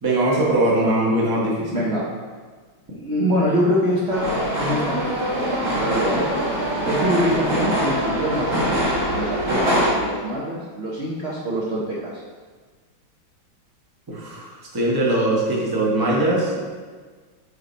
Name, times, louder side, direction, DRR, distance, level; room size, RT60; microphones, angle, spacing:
voice 1, 0.0-1.9 14.1-14.5 14.7-16.6, right 1 dB, 20° right, -4 dB, 0.6 m, -21 dB
voice 2, 1.7-2.0 2.9-6.2 6.9-8.9 9.1-12.2, equal, 70° right, -6 dB, 0.5 m, -25 dB
sound 1, 4.1-9.9, equal, 45° right, 2.1 m, -23 dB
8.2 x 3.1 x 3.9 m, 1.5 s
omnidirectional pair, 2.2 m